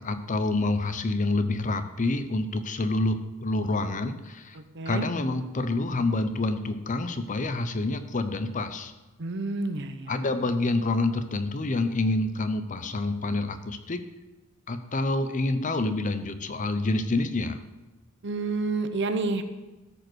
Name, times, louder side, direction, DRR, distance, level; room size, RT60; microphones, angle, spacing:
voice 1, 0.0-4.6 4.9-8.9 10.1-14.0 14.7-17.6, left 2 dB, 35° left, 10 dB, 0.7 m, -27 dB
voice 2, 9.2-10.1 18.2-19.4, right 3 dB, 55° right, 9 dB, 0.8 m, -29 dB
13.5 x 5.2 x 6.2 m, 1.1 s
head